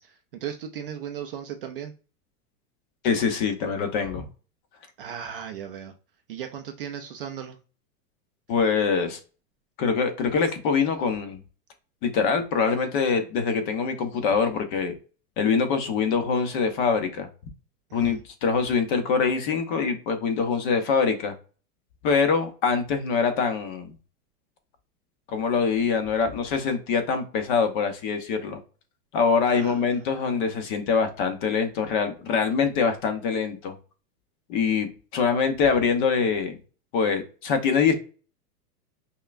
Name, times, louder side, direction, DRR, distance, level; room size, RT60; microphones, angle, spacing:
voice 1, 0.0-1.9 5.0-5.9 6.3-7.6 17.9-18.2 29.5-30.0, right 9 dB, 40° right, 5 dB, 0.4 m, -36 dB
voice 2, 3.0-4.3 8.5-9.2 9.8-11.4 12.0-15.0 15.4-17.3 17.9-21.3 22.0-23.9 25.3-28.6 29.1-33.7 34.5-36.6 36.9-37.9, left 5 dB, 30° left, 7 dB, 0.7 m, -24 dB
5.5 x 2.2 x 2.4 m, 0.37 s
supercardioid pair, 155°, 47 cm